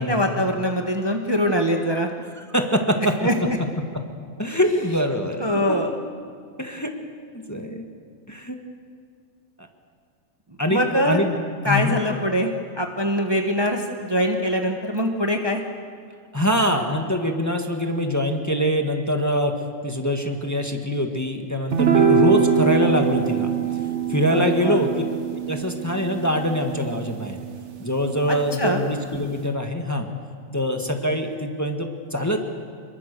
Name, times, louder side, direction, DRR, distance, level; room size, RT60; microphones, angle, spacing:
voice 1, 0.0-2.1 3.2-3.3 5.4-5.9 10.7-11.2 11.6-12.5 12.8-15.6 24.3-24.8 28.3-28.8, equal, 20° right, 3 dB, 1.4 m, -23 dB
voice 2, 2.4-3.1 4.4-5.5 6.6-6.9 7.3-7.9 8.3-8.6 10.6-10.8 11.1-11.4 11.6-12.0 16.3-19.5 19.8-23.5 24.1-24.9 25.5-27.4 27.8-30.1 30.5-32.4, equal, 15° left, 3 dB, 1.7 m, -24 dB
sound 1, 21.7-28.3, right 6 dB, 60° right, 1.3 m, -23 dB
27.0 x 22.5 x 6.9 m, 2.1 s
omnidirectional pair, 1.4 m